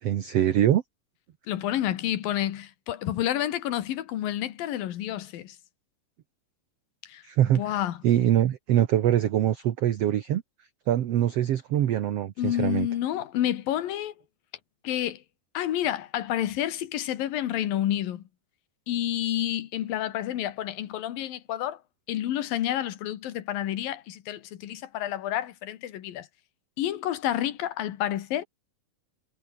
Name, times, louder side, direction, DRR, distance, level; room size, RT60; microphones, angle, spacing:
voice 1, 0.0-0.8 7.2-7.7 8.0-10.4 10.9-12.9, right 11 dB, 60° right, 1.8 m, -23 dB
voice 2, 1.5-5.6 7.0-7.2 7.5-8.0 12.4-14.1 14.8-15.2 15.5-18.2 18.9-21.8 22.1-26.3 26.8-28.4, left 12 dB, 85° left, 3.3 m, -29 dB
omnidirectional pair, 4.0 m